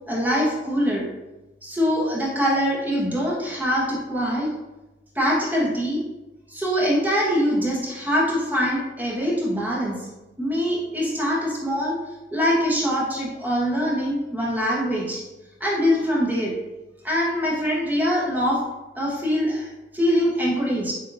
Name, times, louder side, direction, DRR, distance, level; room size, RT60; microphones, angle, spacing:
voice 1, 0.1-1.1 1.6-4.5 5.1-6.0 6.5-10.0 10.4-12.0 12.3-15.2 15.6-16.5 17.0-18.6 18.9-19.7 19.9-20.9, equal, 10° right, -5 dB, 1.0 m, -23 dB
7.1 x 2.7 x 2.6 m, 1.0 s
head